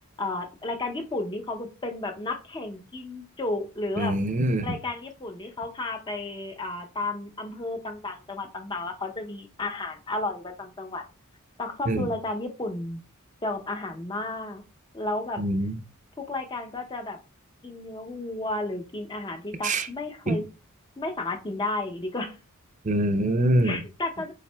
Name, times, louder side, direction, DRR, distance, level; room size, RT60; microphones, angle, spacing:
voice 1, 0.2-4.1 4.6-11.0 11.6-13.0 13.4-14.6 14.9-15.4 16.2-17.2 17.6-20.4 21.0-22.4 23.6-24.3, left 2 dB, 20° left, 0.6 m, -32 dB
voice 2, 4.0-4.7 11.9-12.1 15.4-15.8 19.6-19.9 20.3-20.4 22.8-23.8, right 1 dB, 35° right, 0.5 m, -24 dB
5.7 x 4.1 x 2.2 m
head